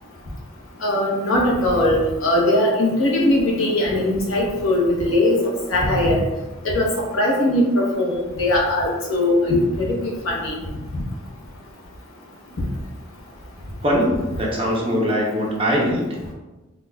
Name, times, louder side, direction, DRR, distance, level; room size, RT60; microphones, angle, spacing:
voice 1, 0.8-6.2 6.6-6.9 7.1-10.5, left 1 dB, 75° left, -3 dB, 0.9 m, -20 dB
voice 2, 13.8-16.0, equal, 25° right, -3 dB, 0.7 m, -21 dB
4.4 x 2.3 x 2.3 m, 1.1 s
head